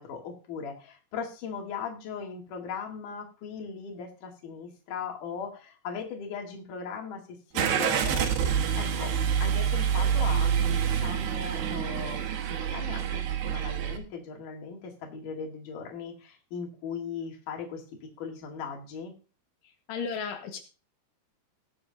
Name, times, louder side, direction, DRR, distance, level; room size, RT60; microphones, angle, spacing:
voice 1, 0.0-8.3 8.8-9.1 9.4-12.2 12.5-17.8 18.2-19.1, left 6 dB, 55° left, 1 dB, 3.4 m, -38 dB
Car / Engine starting, 7.5-14.0, right 8 dB, 80° right, 3.4 m, -27 dB
voice 2, 19.9-20.6, left 5 dB, 80° left, 4 dB, 3.4 m, -33 dB
20.0 x 7.8 x 2.6 m, 0.34 s
omnidirectional pair, 4.7 m